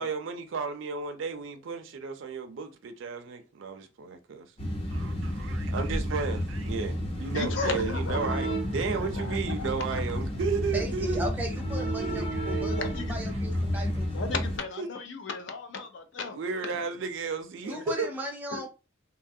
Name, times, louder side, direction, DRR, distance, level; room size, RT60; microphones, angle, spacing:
voice 1, 0.0-4.5 4.9-11.3 12.0-12.7 13.3-13.5 13.7-13.9 14.8-14.9 16.3-18.1, right 5 dB, 65° right, 0.4 m, -33 dB
sound 1, 4.6-14.6, equal, 30° left, 0.7 m, -31 dB
voice 2, 7.3-8.4 9.0-9.7 12.8-13.3 14.1-16.4 16.6-16.8 17.6-17.8 18.5-18.7, left 4 dB, 60° left, 0.5 m, -35 dB
voice 3, 10.7-14.1 17.6-18.7, equal, 10° right, 0.6 m, -37 dB
2.7 x 2.3 x 2.6 m
head